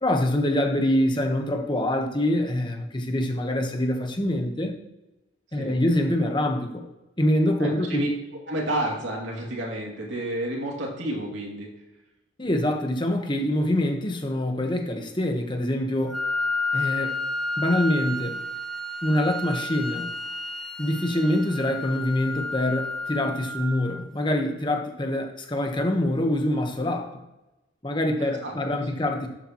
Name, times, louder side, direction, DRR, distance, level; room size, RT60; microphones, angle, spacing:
voice 1, 0.0-4.8 5.5-6.8 7.2-8.1 12.4-16.2 16.7-17.1 17.6-18.4 19.0-20.1 20.8-27.2 27.8-29.3, left 1 dB, 25° left, 3 dB, 1.2 m, -25 dB
voice 2, 7.6-8.1 8.5-11.7 28.2-28.5 28.9-29.0, right 1 dB, 80° right, -1 dB, 2.6 m, -30 dB
Wind instrument woodwind instrument, 16.1-24.1, left 2 dB, 5° left, 0.9 m, -31 dB
13.0 x 8.3 x 3.1 m, 1.0 s
head